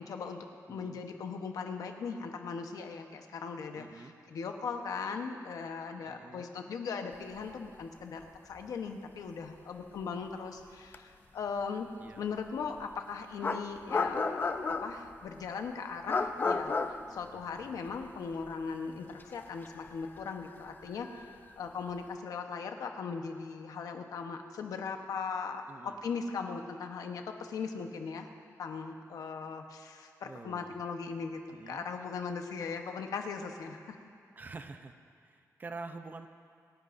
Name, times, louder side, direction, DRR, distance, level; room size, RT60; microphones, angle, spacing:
voice 1, 0.1-0.4 0.7-11.9 12.2-16.7 17.1-28.3 28.6-31.4 31.7-34.0, left 5 dB, 80° left, 5 dB, 1.0 m, -39 dB
voice 2, 3.8-4.1 6.1-6.5 12.0-12.2 25.7-26.0 30.2-30.8 31.5-31.8 34.4-35.0 35.2-36.3, right 3 dB, 30° right, 8 dB, 0.6 m, -46 dB
sound 1, 8.2-8.3 8.6-8.7 10.9-11.0 12.8-12.9 13.4-15.1 16.1-18.0 18.3-18.5 19.2-21.5, left 4 dB, 30° left, 0.5 m, -33 dB
27.5 x 11.0 x 2.6 m, 2.3 s
wide cardioid pair, 155°, 6 cm